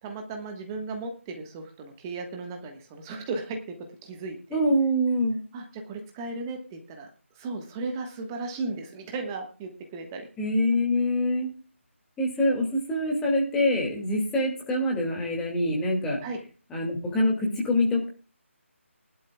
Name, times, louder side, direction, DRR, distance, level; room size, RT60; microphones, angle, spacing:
voice 1, 0.0-3.6 4.0-4.6 5.5-10.3 16.2-16.4, right 3 dB, 15° right, 4 dB, 1.3 m, -36 dB
voice 2, 4.5-5.4 10.4-11.5 12.2-16.2 16.7-18.1, left 1 dB, 5° left, -1 dB, 2.1 m, -25 dB
19.5 x 11.5 x 2.3 m, 0.35 s
figure-of-eight pair, 160°, 7 cm